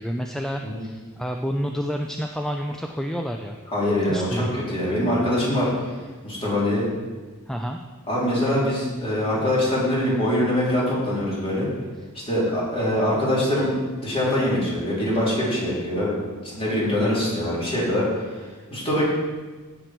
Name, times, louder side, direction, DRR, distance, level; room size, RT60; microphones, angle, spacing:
voice 1, 0.0-3.6 4.1-4.5 7.5-7.8, equal, ahead, 3 dB, 0.4 m, -29 dB
voice 2, 3.7-5.7 6.2-6.9 8.1-11.7 12.1-13.7 14.0-16.1 16.4-18.1 18.7-19.0, left 1 dB, 25° left, -7 dB, 3.7 m, -23 dB
16.0 x 6.0 x 4.6 m, 1.3 s
head